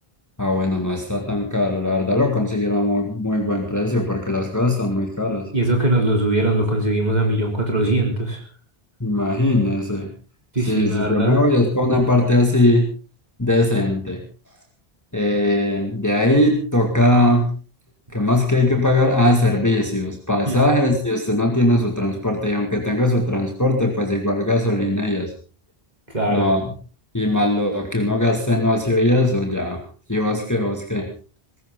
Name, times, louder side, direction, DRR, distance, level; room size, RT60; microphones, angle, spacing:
voice 1, 0.4-5.5 9.0-10.1 10.7-12.9 13.4-14.2 15.1-17.5 18.1-25.3 26.3-26.7 27.1-29.8 30.1-31.1, left 1 dB, 15° left, 3 dB, 2.2 m, -20 dB
voice 2, 5.5-8.4 10.5-11.4 20.5-20.6 26.1-26.4, right 1 dB, 45° right, 1 dB, 3.8 m, -20 dB
20.0 x 17.5 x 3.9 m, 0.37 s
omnidirectional pair, 1.0 m